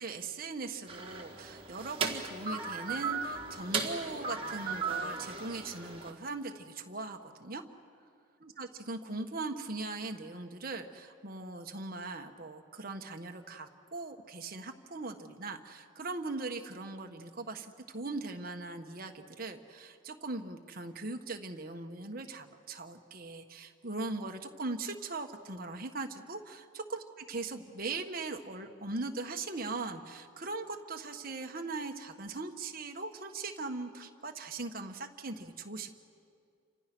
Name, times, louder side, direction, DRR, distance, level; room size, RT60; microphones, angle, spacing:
voice 1, 0.0-7.6 8.4-27.0 27.3-35.9, right 3 dB, 45° right, 5 dB, 1.4 m, -40 dB
sound 1, 0.9-6.1, right 5 dB, 25° right, 1.9 m, -36 dB
29.5 x 26.0 x 6.2 m, 2.4 s
head